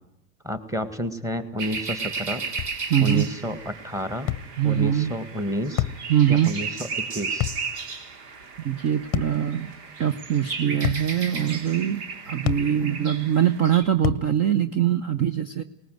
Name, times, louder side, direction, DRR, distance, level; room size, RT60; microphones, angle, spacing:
voice 1, 0.4-2.4 3.0-4.3 4.6-5.8 6.3-6.7 7.0-7.5, equal, 5° right, 12 dB, 1.7 m, -30 dB
frogs and birds, 1.6-13.8, right 4 dB, 70° right, 3.6 m, -35 dB
sound 1, 2.6-2.8 4.3-4.5 5.8-6.0 7.4-7.7 9.1-9.4 10.8-11.1 12.5-12.7 14.0-14.3, left 14 dB, 25° left, 0.8 m, -27 dB
voice 2, 2.9-3.3 4.6-5.1 6.1-6.5 8.6-9.7 10.0-15.6, right 10 dB, 30° right, 12 dB, 1.0 m, -23 dB
19.5 x 19.5 x 9.4 m, 0.83 s
supercardioid pair, 135°, 49 cm